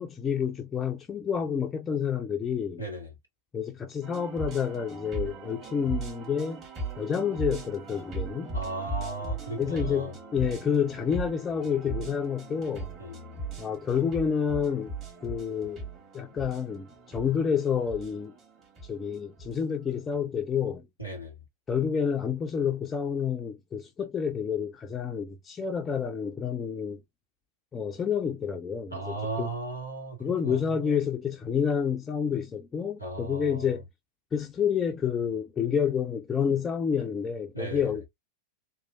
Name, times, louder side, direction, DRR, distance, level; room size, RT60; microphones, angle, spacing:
voice 1, 0.0-2.8 3.5-6.6 7.0-8.5 9.6-12.9 13.6-14.9 15.2-15.8 16.1-18.3 18.8-20.9 21.7-27.0 27.7-29.5 30.2-33.8 34.3-38.1, left 7 dB, 20° left, 0.4 m, -29 dB
voice 2, 2.8-3.1 8.5-10.1 13.0-13.3 21.0-21.4 28.9-31.0 33.0-33.7 37.5-37.9, right 2 dB, 90° right, 1.2 m, -36 dB
sound 1, 4.0-20.2, right 3 dB, 30° right, 1.5 m, -38 dB
3.0 x 2.3 x 2.4 m
figure-of-eight pair, 90°, 0 cm